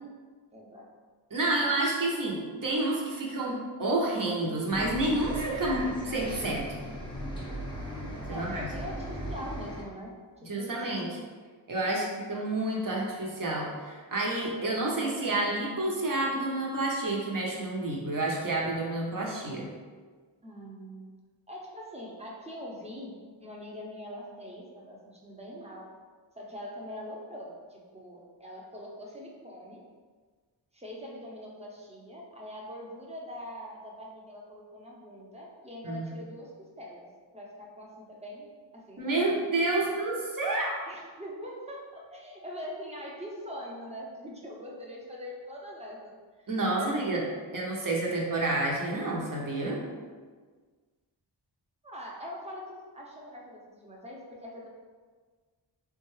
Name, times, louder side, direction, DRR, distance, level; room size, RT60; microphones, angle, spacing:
voice 1, 0.5-0.9 8.3-10.1 10.4-10.8 11.9-12.2 20.4-21.0 21.5-25.9 26.4-29.8 30.7-37.1 37.3-40.0 40.9-47.3 51.8-54.7, equal, 15° right, -3 dB, 0.8 m, -43 dB
voice 2, 1.3-6.7 8.3-8.7 10.4-11.2 11.7-19.7 35.8-36.1 39.0-40.7 46.5-47.2 47.5-49.8, right 2 dB, 45° right, -2 dB, 0.9 m, -29 dB
Bus, 4.7-9.8, equal, 10° left, 1.0 m, -37 dB
3.7 x 2.3 x 3.1 m, 1.5 s
cardioid pair, 45°, 45 cm